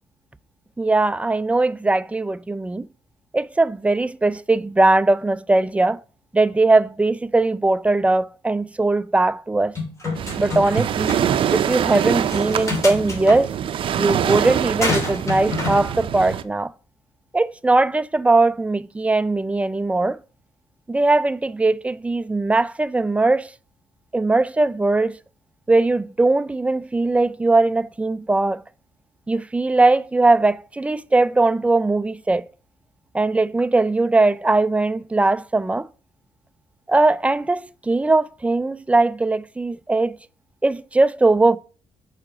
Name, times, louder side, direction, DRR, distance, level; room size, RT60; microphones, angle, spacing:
voice 1, 0.8-2.9 3.3-6.0 6.3-9.7 10.4-11.2 11.5-13.5 14.0-16.7 17.3-20.2 20.9-23.5 24.1-25.2 25.7-28.6 29.3-32.4 33.1-35.9 36.9-40.2 40.6-41.6, right 2 dB, 15° right, 0.4 m, -20 dB
sound 1, 9.8-10.8 11.1-11.2 12.3-13.4 14.8-15.8, left 2 dB, 30° left, 3.2 m, -26 dB
Waves surf, 10.1-16.4, right 9 dB, 60° right, 0.6 m, -24 dB
6.4 x 4.9 x 5.8 m
cardioid pair, 75°, 10 cm